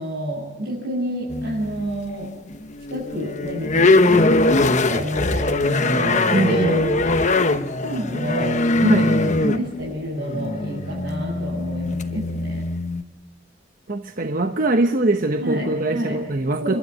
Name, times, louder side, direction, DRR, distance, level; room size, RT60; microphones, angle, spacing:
voice 1, 0.0-2.3 2.9-8.6 9.0-12.6 15.4-16.2 16.6-16.8, equal, 65° right, -4 dB, 7.6 m, -29 dB
sound 1, 1.3-2.0 2.5-13.0, left 2 dB, 40° left, 1.1 m, -21 dB
voice 2, 6.3-6.8 8.8-9.1 12.1-12.2 13.9-16.8, right 2 dB, 45° right, 6 dB, 1.0 m, -22 dB
30.0 x 13.0 x 9.8 m, 1.1 s
head